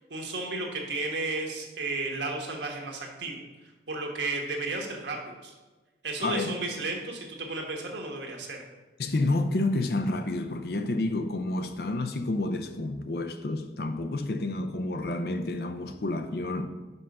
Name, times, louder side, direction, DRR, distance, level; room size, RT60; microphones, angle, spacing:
voice 1, 0.1-3.4 3.9-5.5 6.0-8.6, right 3 dB, 75° right, 1.4 m, -33 dB
voice 2, 6.2-6.6 9.0-16.7, left 2 dB, 55° left, 0.6 m, -29 dB
5.6 x 5.5 x 5.4 m
head